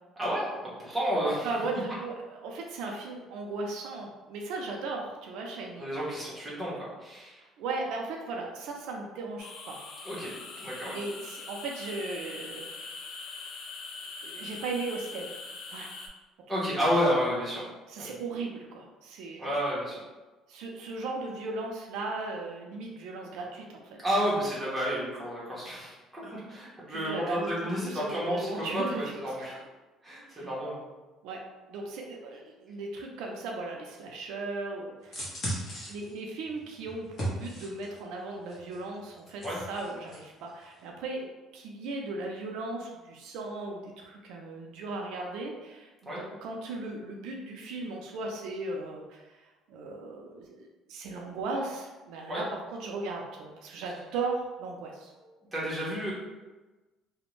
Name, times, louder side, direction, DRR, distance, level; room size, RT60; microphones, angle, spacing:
voice 1, 0.2-1.5 5.8-7.4 10.0-10.3 10.6-11.0 16.5-17.7 18.0-18.2 19.4-20.0 24.0-29.6 30.0-30.8 39.4-39.6 46.1-46.2 52.3-52.4 55.5-56.1, equal, 5° right, -8 dB, 0.9 m, -31 dB
voice 2, 1.4-6.0 7.6-9.8 10.9-12.9 14.2-15.3 15.7-15.9 16.5-16.6 17.9-19.5 20.5-24.0 26.9-29.5 30.3-30.5 31.2-31.4 31.7-35.3 35.9-39.4 39.7-55.1, right 3 dB, 80° right, 0 dB, 0.4 m, -37 dB
sound 1, 9.4-16.1, left 4 dB, 50° left, 0.4 m, -42 dB
sound 2, 35.0-38.0 38.5-40.2 40.5-40.6, right 1 dB, 35° left, 0.9 m, -37 dB
2.5 x 2.1 x 3.0 m, 1.2 s
cardioid pair, 155°, 0 cm